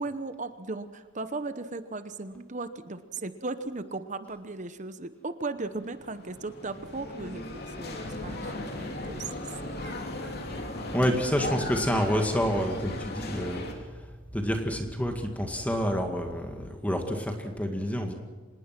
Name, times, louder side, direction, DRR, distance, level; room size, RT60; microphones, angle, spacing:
voice 1, 0.0-10.0 10.4-11.1 11.4-11.6, right 3 dB, 35° right, 11 dB, 0.9 m, -37 dB
sound 1, 5.5-13.7, left 2 dB, 50° left, 3.1 m, -37 dB
sound 2, 10.4-16.7, equal, 15° right, 1.4 m, -46 dB
voice 2, 10.9-13.7 14.3-18.1, equal, 5° left, 4 dB, 2.0 m, -28 dB
26.0 x 19.5 x 6.0 m, 1.4 s
head